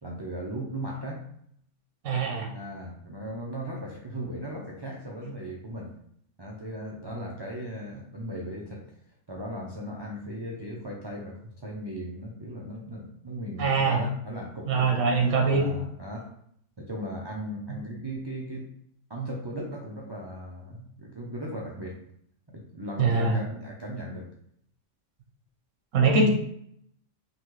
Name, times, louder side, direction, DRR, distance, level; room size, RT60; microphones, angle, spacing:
voice 1, 0.0-1.3 2.5-5.9 6.4-8.8 9.3-16.3 16.8-18.7 19.1-22.0 22.5-24.3, right 1 dB, 40° right, -3 dB, 0.3 m, -37 dB
voice 2, 2.0-2.5 13.6-14.0 14.7-15.7 23.0-23.4 25.9-26.3, right 4 dB, 85° right, 2 dB, 1.1 m, -23 dB
3.8 x 2.9 x 3.1 m, 0.68 s
omnidirectional pair, 1.3 m